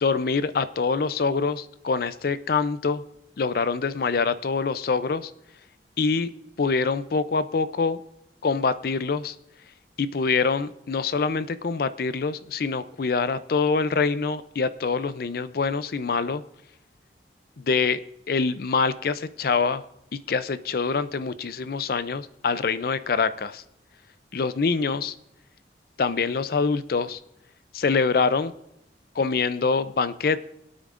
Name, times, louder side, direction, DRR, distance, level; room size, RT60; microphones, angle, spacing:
voice 1, 0.0-3.0 3.4-5.3 6.0-6.3 6.6-8.0 8.4-9.3 10.0-16.4 17.6-18.0 18.3-19.8 20.1-23.6 24.3-25.1 26.0-27.2 27.7-28.5 29.2-30.4, left 4 dB, 55° left, 14 dB, 0.4 m, -25 dB
25.5 x 8.8 x 2.5 m, 0.84 s
head